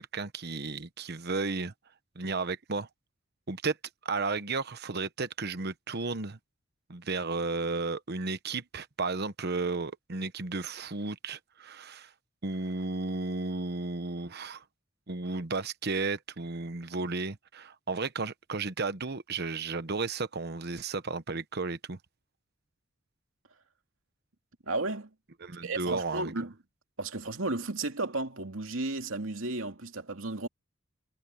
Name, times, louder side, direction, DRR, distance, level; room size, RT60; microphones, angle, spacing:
voice 1, 0.0-1.7 2.1-2.9 3.5-3.8 4.0-6.4 6.9-12.1 12.4-14.6 15.1-22.0 25.4-26.3, right 3 dB, 55° right, 1.1 m, -33 dB
voice 2, 24.7-25.1 25.6-26.5 27.0-30.5, right 2 dB, 85° right, 2.6 m, -33 dB
head